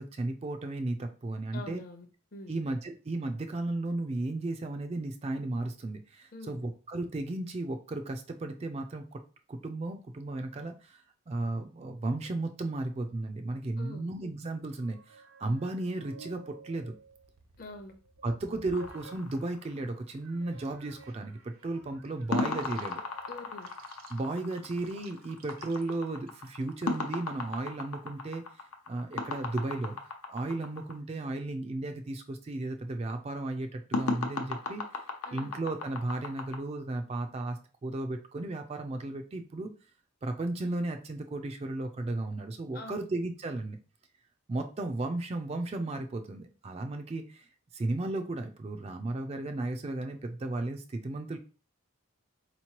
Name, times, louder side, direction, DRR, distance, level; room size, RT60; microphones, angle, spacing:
voice 1, 0.0-1.8 2.5-9.2 9.5-17.0 18.2-23.0 24.1-30.0 30.3-34.8 35.3-39.7 40.2-43.8 44.5-47.5 47.7-51.4, right 2 dB, 30° right, 5 dB, 0.3 m, -35 dB
voice 2, 1.5-2.1 2.3-2.6 6.3-6.6 13.8-14.1 17.6-17.9 23.3-23.7 35.3-35.5 42.7-43.1, left 2 dB, 40° left, 5 dB, 0.7 m, -45 dB
sound 1, 14.7-19.7 20.2-26.9, right 4 dB, 75° right, 0.7 m, -54 dB
sound 2, 18.7-20.1 22.3-30.9 33.9-36.6, left 3 dB, 85° left, 0.7 m, -36 dB
4.2 x 3.0 x 2.8 m, 0.36 s
head